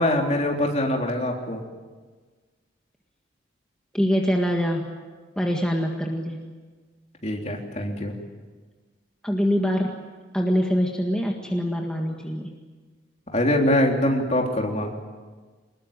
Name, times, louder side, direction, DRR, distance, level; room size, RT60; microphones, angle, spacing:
voice 1, 0.0-1.6 7.2-8.1 13.3-14.9, left 1 dB, 35° left, 1 dB, 3.5 m, -23 dB
voice 2, 3.9-4.9 5.4-6.4 9.2-10.0 10.3-12.5, equal, 5° left, 0 dB, 1.8 m, -24 dB
24.5 x 21.0 x 9.0 m, 1.4 s
head